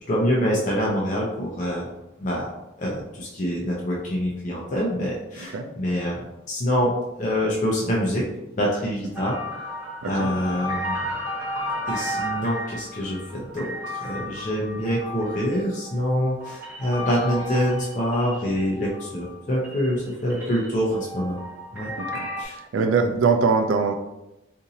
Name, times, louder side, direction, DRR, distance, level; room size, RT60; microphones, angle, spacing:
voice 1, 0.0-1.9 2.2-2.5 2.8-8.2 8.6-9.7 10.1-11.0 11.9-21.4 21.7-21.9 22.4-22.6 23.0-23.1, equal, 40° left, -4 dB, 0.5 m, -26 dB
sound 1, 9.1-19.4 19.6-22.4, equal, 10° right, 0.8 m, -33 dB
voice 2, 22.7-23.9, right 5 dB, 90° right, 5 dB, 0.4 m, -21 dB
4.0 x 2.6 x 2.7 m, 0.93 s
head